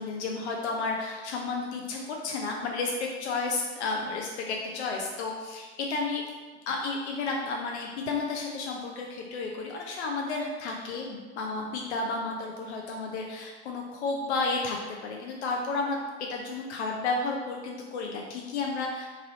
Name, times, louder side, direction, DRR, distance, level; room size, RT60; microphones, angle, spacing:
voice 1, 0.0-6.2 6.7-14.8 15.0-16.0 16.3-19.1, left 3 dB, 75° left, 0 dB, 0.6 m, -32 dB
3.0 x 2.6 x 3.9 m, 1.3 s
hypercardioid pair, 105°, 34 cm